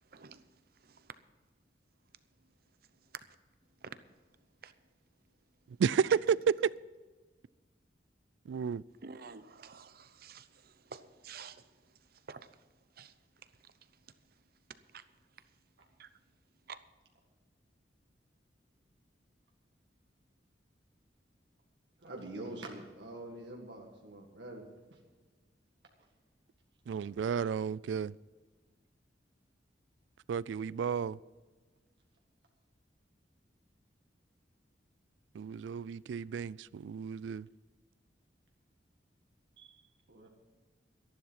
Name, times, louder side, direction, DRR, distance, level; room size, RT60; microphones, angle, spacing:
voice 1, 0.0-1.2 2.4-2.5 3.0-3.2 3.8-4.7 9.0-12.7 12.9-13.2 13.4-14.3 14.7-15.0 15.3-15.5 16.0-16.1 16.7-16.8, right 6 dB, 55° right, 0.8 m, -51 dB
voice 2, 5.8-6.1 8.5-8.8 26.9-28.1 30.3-31.2 35.3-37.5, right 6 dB, 90° right, 0.3 m, -33 dB
voice 3, 22.0-24.6 24.9-25.0 39.6-39.8 40.1-40.3, right 2 dB, 75° right, 1.9 m, -45 dB
13.0 x 11.5 x 5.7 m
head